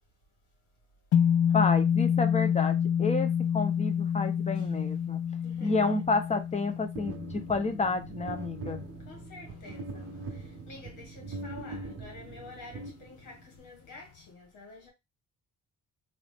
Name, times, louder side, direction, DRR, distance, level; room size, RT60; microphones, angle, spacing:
sound 1, 1.1-9.6, left 8 dB, 55° left, 0.5 m, -28 dB
voice 1, 1.5-5.2 5.6-8.8, left 3 dB, 20° left, 0.7 m, -30 dB
voice 2, 5.4-5.9 9.1-14.9, left 3 dB, 85° left, 1.8 m, -49 dB
sound 2, 7.0-13.6, right 3 dB, 50° right, 0.7 m, -42 dB
3.0 x 2.7 x 3.4 m
cardioid pair, 90°, 30 cm